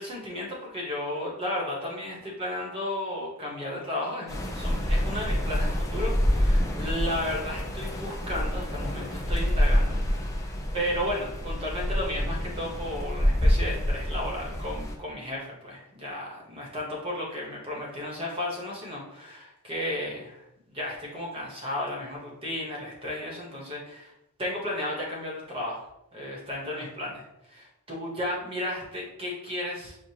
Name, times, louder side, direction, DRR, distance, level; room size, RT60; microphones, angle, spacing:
voice 1, 0.0-10.2 10.7-24.1 24.4-25.8 26.1-27.2 27.5-30.0, left 1 dB, 25° right, -2 dB, 1.1 m, -34 dB
sound 1, 4.3-15.0, equal, 15° left, 0.4 m, -27 dB
6.4 x 2.3 x 2.8 m, 0.86 s
head